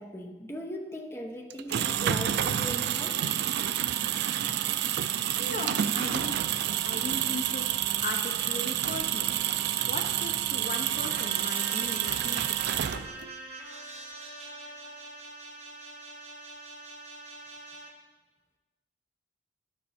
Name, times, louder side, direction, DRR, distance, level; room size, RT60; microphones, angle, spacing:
voice 1, 0.0-3.3, equal, 15° left, 2 dB, 0.8 m, -39 dB
sound 1, 1.5-13.3, right 11 dB, 60° right, 0.3 m, -29 dB
voice 2, 5.4-6.4 6.8-7.7 8.0-9.3 9.9-13.0, left 2 dB, 45° left, 4 dB, 0.6 m, -38 dB
sound 2, 11.0-17.9, right 2 dB, 35° right, 1.1 m, -43 dB
11.5 x 5.6 x 4.2 m, 1.2 s
head